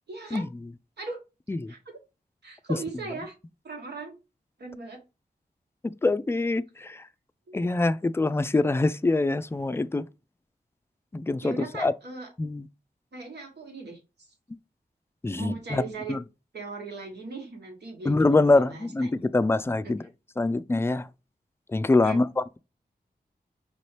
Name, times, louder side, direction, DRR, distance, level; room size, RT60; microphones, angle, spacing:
voice 1, 0.1-0.5 1.0-1.2 1.7-2.0 2.4-3.3 3.6-4.2 4.6-5.0 7.5-7.6 11.4-12.3 13.1-14.0 15.4-16.2 16.5-19.2 19.8-19.9 22.0-22.2, right 3 dB, 85° right, 1.5 m, -38 dB
voice 2, 6.0-7.0 7.5-10.0 11.1-11.9 12.4-12.7 15.2-15.8 16.1-16.2 18.1-20.0 20.4-21.1 21.7-22.6, left 2 dB, 15° left, 0.3 m, -24 dB
5.1 x 2.7 x 3.2 m
wide cardioid pair, 60°, 17 cm